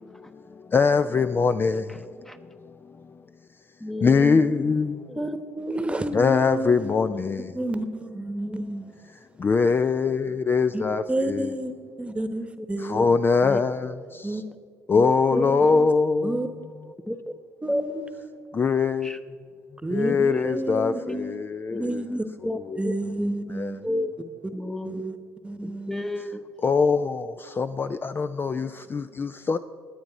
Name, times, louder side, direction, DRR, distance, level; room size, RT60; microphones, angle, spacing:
voice 1, 0.7-1.8 4.0-4.9 6.1-7.4 9.4-11.5 12.9-13.9 14.9-16.4 18.5-19.1 19.9-22.0 22.7-22.8 23.6-23.7 26.6-29.6, left 5 dB, 30° left, 0.4 m, -22 dB
voice 2, 3.8-4.8 5.1-5.3 7.1-7.2 8.4-8.6 12.6-12.7 13.4-13.6 14.9-15.5 17.1-17.2 17.7-17.8 19.0-19.2 20.0-20.5 20.8-21.2 21.7-22.6 22.8-22.9 23.2-23.5 23.8-24.1 24.5-25.0 25.6-26.4, left 1 dB, 5° left, 0.9 m, -32 dB
voice 3, 5.6-7.0 7.5-8.9 10.7-10.8 11.1-11.7 12.0-13.1 14.2-14.4 15.3-15.9 16.2-16.5 17.6-18.0 19.8-20.1 20.4-21.3 21.8-22.1 22.8-23.8 24.8-25.2 25.4-26.0, right 1 dB, 15° right, 1.1 m, -30 dB
20.0 x 8.7 x 4.1 m
hypercardioid pair, 60°, 7 cm